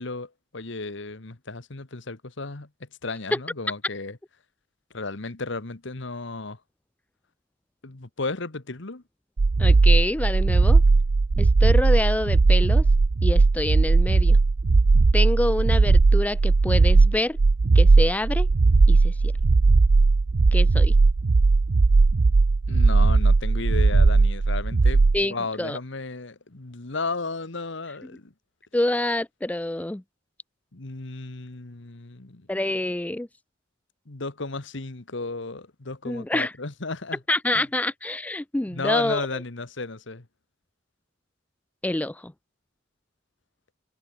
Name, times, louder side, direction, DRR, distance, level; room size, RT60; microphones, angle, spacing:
voice 1, 0.0-4.2 4.9-6.6 7.8-9.0 22.7-28.3 30.7-32.5 34.1-37.2 37.5-37.6 38.7-40.2, left 3 dB, 65° left, 1.4 m, -34 dB
sound 1, 9.4-25.2, right 3 dB, 65° right, 0.6 m, -18 dB
voice 2, 9.6-10.8 11.4-12.9 13.2-14.4 15.1-17.4 17.7-18.5 18.9-19.3 20.5-20.9 25.1-25.8 28.7-30.0 32.5-33.3 36.1-36.5 37.3-39.2 41.8-42.3, left 1 dB, 5° left, 0.4 m, -27 dB
head